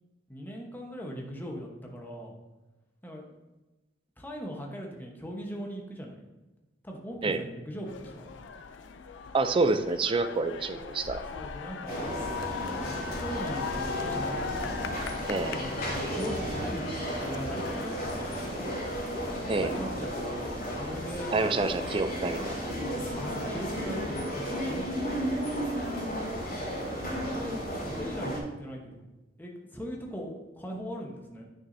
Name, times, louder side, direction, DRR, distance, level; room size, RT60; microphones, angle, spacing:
voice 1, 0.3-2.3 3.0-3.3 4.2-6.2 6.8-8.4 11.3-12.1 13.1-14.5 15.4-18.5 19.6-21.3 22.8-25.3 25.6-25.9 27.0-29.1 29.4-31.4, equal, 10° left, 0 dB, 1.0 m, -40 dB
sound 1, 7.8-22.1, left 5 dB, 70° left, 0.4 m, -40 dB
voice 2, 9.3-11.2 15.3-15.6 19.5-19.7 21.3-22.7, right 3 dB, 30° right, 10 dB, 0.4 m, -27 dB
sound 2, 11.9-28.4, equal, 50° left, 2.6 m, -34 dB
9.4 x 6.2 x 2.7 m, 1.1 s
head